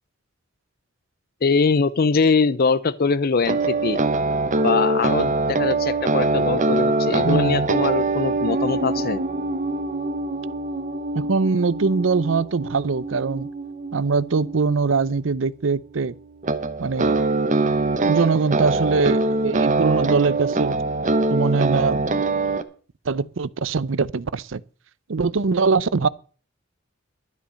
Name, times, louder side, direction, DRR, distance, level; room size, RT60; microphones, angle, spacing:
voice 1, 1.4-4.0 4.6-9.2, left 4 dB, 50° left, 0.6 m, -22 dB
sound 1, 3.4-15.4 16.4-22.6, right 2 dB, 40° right, 0.9 m, -23 dB
voice 2, 7.2-7.7 11.1-13.5 13.9-16.1 16.8-17.2 18.1-20.8 21.3-22.1 23.1-24.6 25.1-26.1, right 4 dB, 70° right, 0.6 m, -22 dB
12.5 x 8.3 x 6.3 m
head